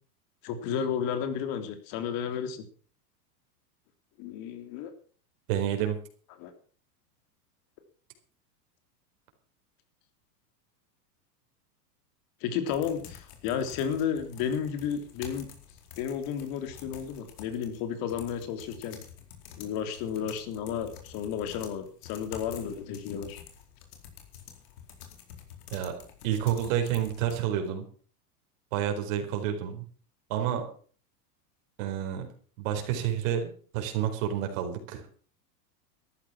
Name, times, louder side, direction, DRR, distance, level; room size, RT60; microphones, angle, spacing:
voice 1, 0.4-2.6 4.2-4.9 6.4-6.5 12.4-15.5 16.0-19.0 19.5-23.4, left 8 dB, 45° left, 8 dB, 3.3 m, -32 dB
voice 2, 5.5-6.0 25.7-25.9 26.2-27.8 28.7-29.8 30.3-30.6 31.8-32.3 32.6-35.0, right 10 dB, 55° right, 5 dB, 4.5 m, -29 dB
sound 1, 12.7-27.4, left 9 dB, 70° left, 4.4 m, -48 dB
13.5 x 12.0 x 6.0 m, 0.43 s
supercardioid pair, 130°, 47 cm